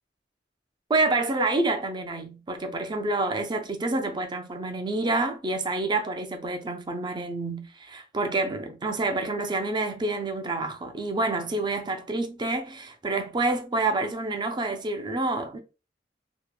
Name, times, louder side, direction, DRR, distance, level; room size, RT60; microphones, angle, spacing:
voice 1, 0.9-15.6, right 2 dB, 25° right, 0.4 m, -28 dB
2.8 x 2.1 x 2.2 m
head